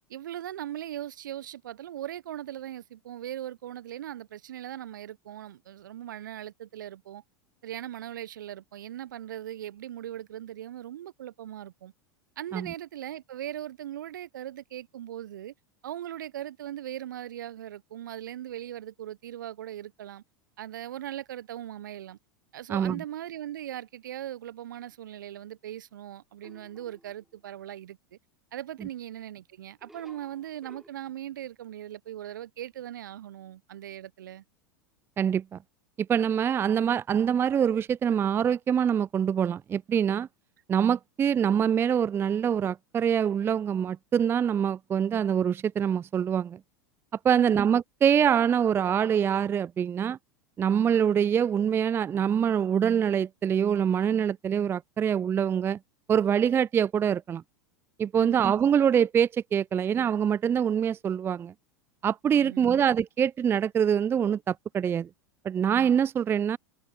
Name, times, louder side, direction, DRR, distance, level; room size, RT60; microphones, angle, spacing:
voice 1, 0.1-7.2 7.6-11.9 12.4-15.5 15.8-20.2 20.6-22.2 22.5-28.2 28.5-34.4 47.4-47.6 58.2-58.4 62.4-62.8, right 12 dB, 65° right, 1.2 m, -39 dB
voice 2, 22.7-23.0 35.2-35.6 36.0-40.3 40.7-46.6 47.2-50.2 50.6-55.8 56.1-57.4 58.0-61.5 62.0-65.1 65.4-66.6, right 8 dB, 20° right, 0.5 m, -25 dB
sound 1, 26.4-27.5 29.8-30.9, right 1 dB, ahead, 3.4 m, -55 dB
figure-of-eight pair, 85°, 11 cm